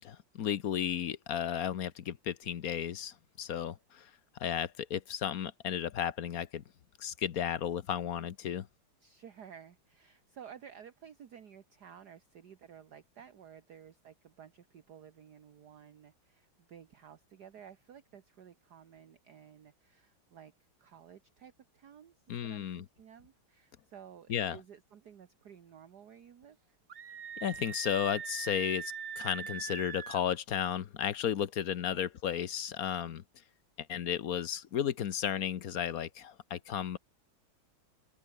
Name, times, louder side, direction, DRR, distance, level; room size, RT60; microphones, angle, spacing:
voice 1, 0.0-4.1 4.4-6.6 7.0-8.7 22.3-22.8 24.3-24.6 27.4-33.2 33.9-37.0, left 9 dB, 55° left, 1.1 m, -34 dB
voice 2, 9.0-20.5 20.8-26.8 31.9-32.1, right 8 dB, 55° right, 1.8 m, -54 dB
Screaming, 26.9-30.3, right 8 dB, 75° right, 0.5 m, -41 dB
open air
omnidirectional pair, 2.3 m